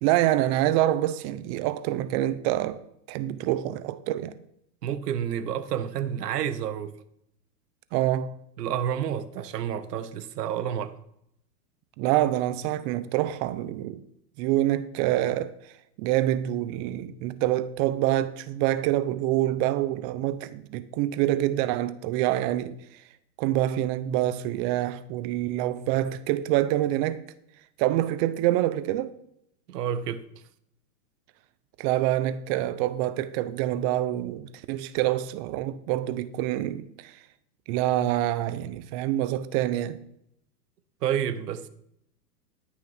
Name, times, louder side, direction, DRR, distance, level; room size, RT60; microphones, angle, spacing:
voice 1, 0.0-2.8 3.1-4.3 7.9-8.4 12.0-14.0 14.4-15.5 16.0-22.8 23.4-27.2 27.8-29.2 31.8-37.2 37.7-40.0, right 14 dB, 40° right, 0.8 m, -26 dB
voice 2, 4.8-6.9 8.6-10.9 29.7-30.2 41.0-41.7, right 9 dB, 75° right, 1.4 m, -29 dB
13.0 x 6.4 x 5.7 m
hypercardioid pair, 120°, 48 cm